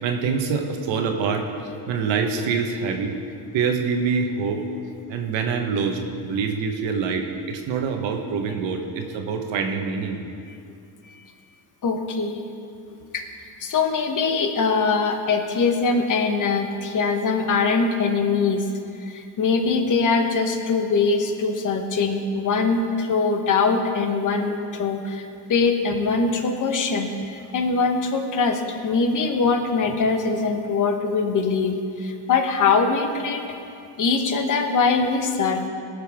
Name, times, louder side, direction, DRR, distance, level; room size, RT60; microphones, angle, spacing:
voice 1, 0.0-1.5 1.9-3.2 3.5-4.6 5.1-10.2, right 5 dB, 70° right, 4 dB, 1.3 m, -25 dB
voice 2, 11.8-12.4 13.1-13.2 13.6-18.6 19.0-33.4 34.0-35.7, left 4 dB, 40° left, 5 dB, 1.2 m, -22 dB
18.5 x 6.7 x 3.6 m, 2.5 s
cardioid pair, 105°, 46 cm